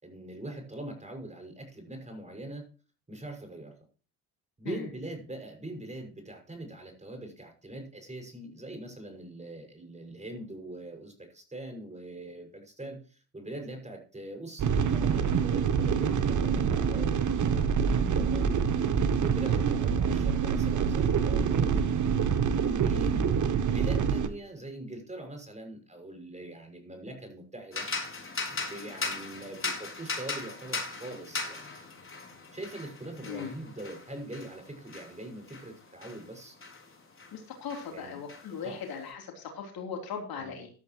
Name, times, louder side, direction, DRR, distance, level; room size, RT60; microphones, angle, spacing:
voice 1, 0.0-2.7 3.1-3.7 4.6-18.7 19.2-21.9 22.4-23.3 23.7-27.9 28.5-31.7 32.5-36.6 37.9-38.2 38.6-38.8 40.4-40.6, right 1 dB, 15° right, 4 dB, 6.1 m, -42 dB
sound 1, 14.6-24.3, right 7 dB, 40° right, 1.6 m, -26 dB
sound 2, 27.7-37.4 37.7-39.0, left 3 dB, 30° left, 5.8 m, -38 dB
voice 2, 33.2-33.6 37.3-40.7, left 6 dB, 50° left, 2 dB, 3.6 m, -39 dB
14.0 x 12.5 x 3.1 m, 0.37 s
hypercardioid pair, 55°, 44 cm